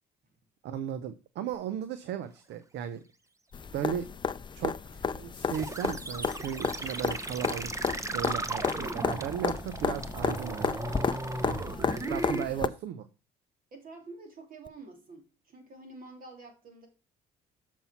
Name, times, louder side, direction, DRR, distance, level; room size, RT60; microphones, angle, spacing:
voice 1, 0.6-3.0 3.7-4.1 4.5-10.8 11.4-13.1, right 9 dB, 70° right, 12 dB, 0.7 m, -36 dB
sound 1, 3.5-12.7 14.7-14.8, left 6 dB, 25° left, 0.5 m, -33 dB
sound 2, 5.5-12.5, right 2 dB, 15° right, 0.7 m, -36 dB
voice 2, 11.4-12.1 13.7-16.9, right 3 dB, 50° right, 3 dB, 2.8 m, -48 dB
7.0 x 4.5 x 5.6 m, 0.31 s
supercardioid pair, 80°, 18 cm